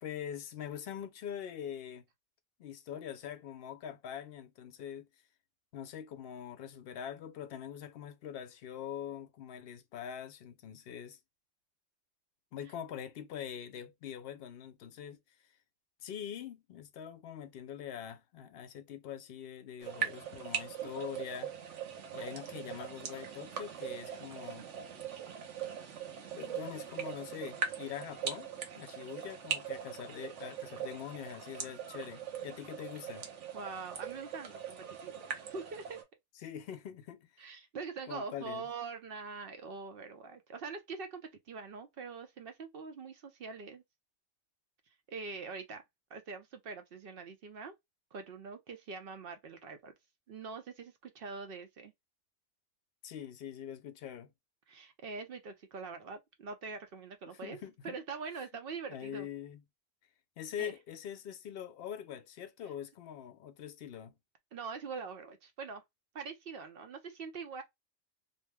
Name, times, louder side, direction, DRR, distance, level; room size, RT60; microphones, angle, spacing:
voice 1, 0.0-2.0 2.6-5.1 5.7-11.2 12.5-15.2 16.0-21.5 22.1-24.7 26.3-28.5 28.8-33.3 36.4-37.5 38.1-38.7 53.0-54.3 57.3-58.0 58.9-59.6 60.4-64.2, left 9 dB, 65° left, 0.7 m, -43 dB
sound 1, 19.8-36.0, right 7 dB, 85° right, 1.0 m, -41 dB
voice 2, 33.5-36.0 37.4-43.8 45.1-45.8 46.1-47.7 48.1-49.9 50.3-51.9 54.7-57.6 57.8-59.3 60.6-60.7 64.5-65.8 66.1-67.6, right 4 dB, 60° right, 0.7 m, -43 dB
2.7 x 2.0 x 3.3 m
omnidirectional pair, 1.2 m